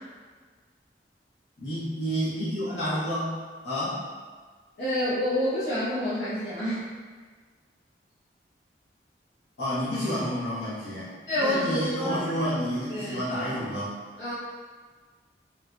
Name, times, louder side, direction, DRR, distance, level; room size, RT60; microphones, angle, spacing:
voice 1, 1.6-3.3 3.6-4.0 9.6-11.1 11.4-13.9, equal, 90° left, -10 dB, 0.9 m, -29 dB
voice 2, 4.8-6.9 11.3-12.5 12.9-13.2 14.2-14.3, left 1 dB, 60° left, -14 dB, 0.9 m, -28 dB
3.3 x 2.6 x 2.3 m, 1.5 s
head